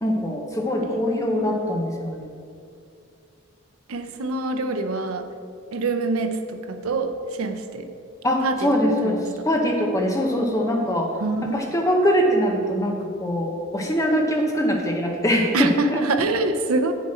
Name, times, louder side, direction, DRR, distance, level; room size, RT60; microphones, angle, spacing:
voice 1, 0.0-2.3 8.2-11.2 11.4-16.0, equal, 15° left, 1 dB, 0.8 m, -23 dB
voice 2, 0.8-1.7 3.9-5.3 5.7-7.9 8.4-9.5 11.2-11.6 15.5-16.9, right 3 dB, 85° right, 7 dB, 0.6 m, -26 dB
8.2 x 7.3 x 4.4 m, 2.4 s
head